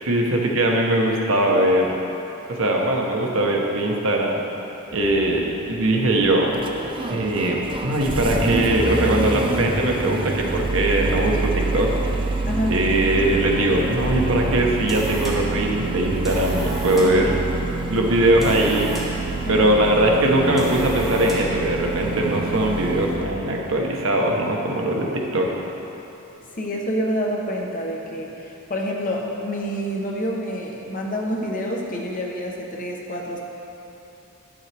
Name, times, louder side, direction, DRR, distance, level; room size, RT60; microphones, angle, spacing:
voice 1, 0.0-2.0 2.5-4.4 4.9-6.5 7.1-12.4 12.7-17.4 17.9-18.9 19.5-25.6, right 1 dB, 65° right, 0 dB, 0.9 m, -21 dB
Engine starting, 4.9-23.3, right 2 dB, 25° right, 0.4 m, -27 dB
voice 2, 12.5-12.8 16.9-17.2 19.5-19.7 26.6-33.4, equal, 40° left, -1 dB, 0.9 m, -27 dB
sound 1, 14.6-21.7, right 1 dB, ahead, 1.1 m, -36 dB
9.7 x 7.0 x 3.4 m, 2.9 s
head